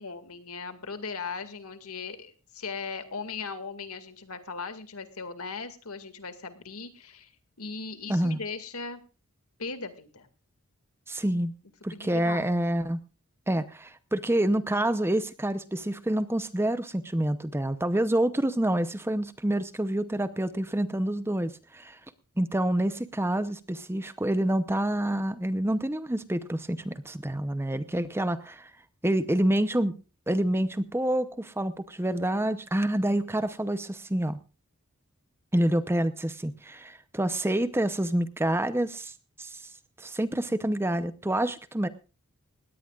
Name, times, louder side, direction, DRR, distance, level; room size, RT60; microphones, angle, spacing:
voice 1, 0.0-7.3 7.6-9.0 9.6-10.3 11.9-12.6, left 4 dB, 75° left, 9 dB, 2.2 m, -38 dB
voice 2, 8.1-8.4 11.1-11.5 11.8-13.0 13.5-22.0 22.4-28.7 29.0-30.0 30.3-34.4 35.5-39.1 39.4-39.6 40.0-41.9, right 1 dB, 10° right, 12 dB, 0.7 m, -27 dB
20.0 x 17.5 x 2.4 m, 0.33 s
head